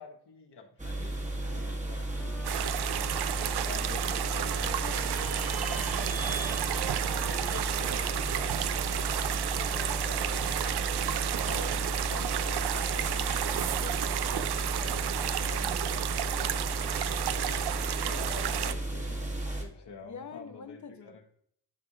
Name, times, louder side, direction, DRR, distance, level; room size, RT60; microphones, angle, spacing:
voice 1, 0.0-3.2 4.2-4.8 7.1-8.6 9.1-12.0 13.0-13.1 17.3-21.3, left 4 dB, 85° left, 3 dB, 1.4 m, -49 dB
sound 1, 0.8-19.6, right 1 dB, 20° right, 1.3 m, -34 dB
Trumpet, 2.1-10.7, equal, 5° left, 1.0 m, -48 dB
sound 2, 2.4-18.7, right 11 dB, 75° right, 0.5 m, -32 dB
voice 2, 3.6-6.1 11.3-16.6 17.4-17.5 18.3-18.8 19.8-21.3, left 6 dB, 45° left, 8 dB, 0.8 m, -47 dB
11.5 x 4.8 x 2.4 m, 0.66 s
wide cardioid pair, 105°, 40 cm